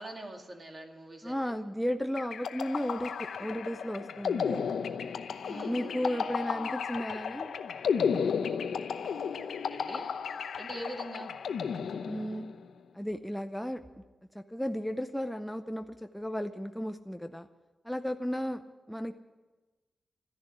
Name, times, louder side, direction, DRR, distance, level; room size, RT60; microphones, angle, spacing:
voice 1, 0.0-1.6 5.5-6.7 9.7-10.1 10.6-11.3, right 1 dB, 25° right, 3 dB, 2.2 m, -44 dB
voice 2, 1.2-3.1 3.4-4.6 5.5-7.5 12.1-12.4 12.9-13.8 14.3-15.9 16.1-17.5 17.8-18.6 18.9-19.1, equal, ahead, 6 dB, 0.6 m, -34 dB
sound 1, 2.2-12.6, left 6 dB, 90° left, 0.8 m, -33 dB
13.5 x 10.5 x 9.8 m, 1.2 s
wide cardioid pair, 150°, 0 cm